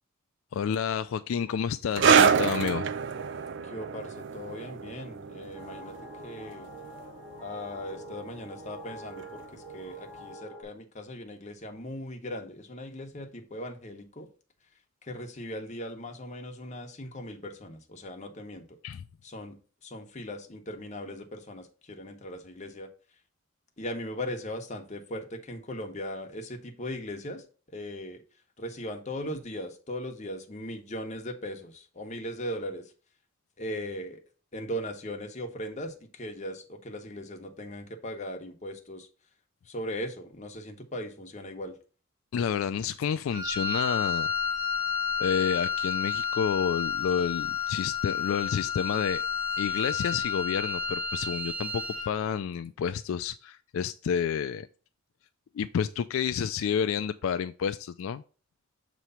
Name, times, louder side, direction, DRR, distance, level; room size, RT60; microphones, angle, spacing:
voice 1, 0.5-2.9 18.8-19.0 42.3-44.3 45.2-49.2 49.6-54.7 55.5-58.2, left 7 dB, 80° left, 0.3 m, -30 dB
sound 1, 2.0-9.0 9.2-9.4 10.2-10.3, right 6 dB, 60° right, 0.4 m, -27 dB
voice 2, 3.7-6.0 6.2-6.7 7.4-14.3 15.0-18.6 19.2-19.6 19.8-22.9 23.8-27.4 27.7-28.2 28.6-32.9 33.6-34.2 34.5-39.1 39.7-41.8, equal, 35° left, 1.0 m, -38 dB
sound 2, 5.5-10.6, right 1 dB, 20° right, 2.6 m, -46 dB
Wind instrument woodwind instrument, 43.3-52.2, left 6 dB, 75° right, 1.1 m, -31 dB
6.7 x 3.1 x 5.5 m
head